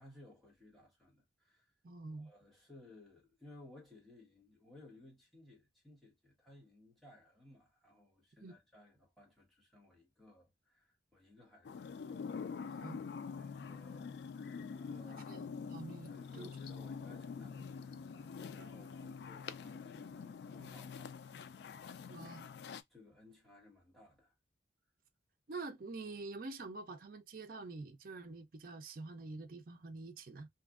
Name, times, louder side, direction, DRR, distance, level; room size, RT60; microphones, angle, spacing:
voice 1, 0.0-1.7 2.1-12.9 13.3-14.1 14.7-15.4 16.0-22.5 22.9-24.3, left 2 dB, ahead, 1.1 m, -60 dB
voice 2, 1.8-2.3 8.4-8.5 12.8-13.0 15.3-16.7 22.1-22.5 25.5-30.5, right 3 dB, 50° right, 0.5 m, -47 dB
sound 1, 11.6-22.8, left 5 dB, 65° left, 0.3 m, -46 dB
2.7 x 2.5 x 2.3 m
head